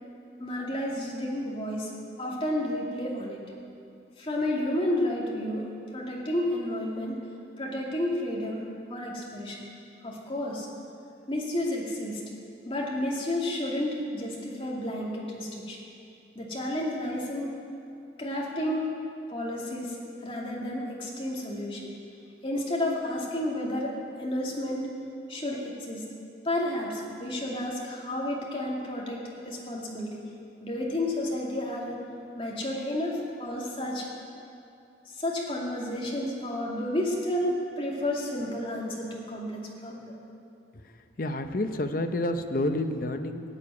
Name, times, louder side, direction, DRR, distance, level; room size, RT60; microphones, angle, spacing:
voice 1, 0.4-1.9 2.2-3.4 4.2-5.6 5.9-7.2 7.6-8.6 8.9-9.7 10.0-10.7 11.3-12.2 12.7-15.8 16.3-17.5 18.2-18.9 19.3-20.0 20.2-21.9 22.4-24.9 25.3-26.0 26.4-30.2 30.6-32.0 32.3-34.1 35.1-40.1, left 1 dB, 30° left, -4 dB, 2.4 m, -31 dB
voice 2, 41.2-43.4, left 1 dB, 50° left, 7 dB, 0.7 m, -29 dB
15.5 x 7.0 x 9.6 m, 2.6 s
head